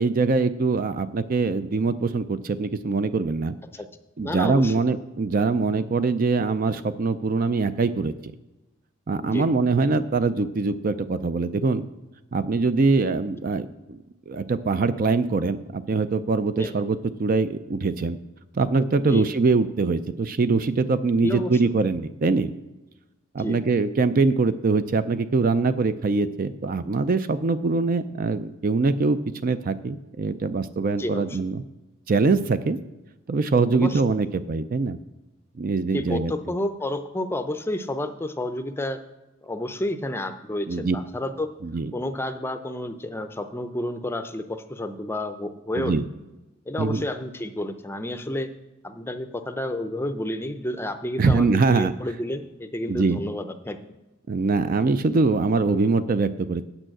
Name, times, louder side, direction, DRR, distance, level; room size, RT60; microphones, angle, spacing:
voice 1, 0.0-3.5 4.2-8.1 9.1-11.9 12.3-14.0 14.3-18.2 18.5-22.5 23.3-31.6 32.1-32.8 33.3-35.0 35.6-36.3 40.7-41.0 41.6-41.9 45.8-46.0 46.8-47.0 51.2-51.9 52.9-53.2 54.3-56.6, right 4 dB, 40° right, 12 dB, 0.4 m, -23 dB
voice 2, 4.2-4.8 9.2-9.5 16.6-16.8 19.0-19.3 21.2-21.5 23.4-23.6 31.0-31.4 33.7-34.0 35.9-39.0 39.4-41.5 41.9-46.2 46.7-48.5 48.8-53.8, left 1 dB, 10° left, 8 dB, 0.5 m, -30 dB
8.9 x 5.4 x 7.6 m, 1.1 s
head